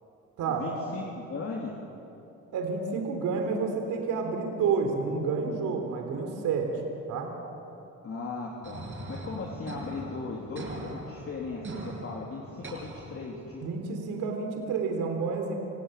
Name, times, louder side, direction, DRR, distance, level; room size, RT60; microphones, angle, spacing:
voice 1, 0.5-1.7 8.0-13.6, left 4 dB, 45° left, -1 dB, 3.5 m, -37 dB
voice 2, 2.5-6.7 7.1-7.3 13.6-15.6, right 5 dB, 85° right, 3 dB, 3.7 m, -29 dB
sound 1, 8.6-13.6, right 2 dB, 40° right, 7.1 m, -41 dB
29.0 x 17.0 x 9.4 m, 2.9 s
cardioid pair, 90°, 30 cm